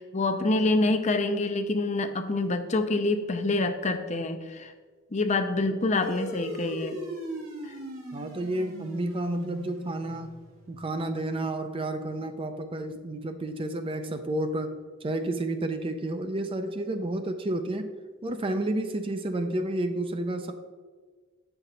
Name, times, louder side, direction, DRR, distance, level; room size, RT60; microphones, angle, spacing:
voice 1, 0.0-4.7 5.1-7.0, left 2 dB, 35° left, 8 dB, 0.5 m, -26 dB
sound 1, 6.0-10.9, right 1 dB, 80° right, 1.8 m, -39 dB
voice 2, 8.1-10.4 10.7-17.9 18.2-20.5, right 1 dB, 25° right, 8 dB, 0.4 m, -31 dB
8.4 x 5.8 x 3.9 m, 1.5 s
head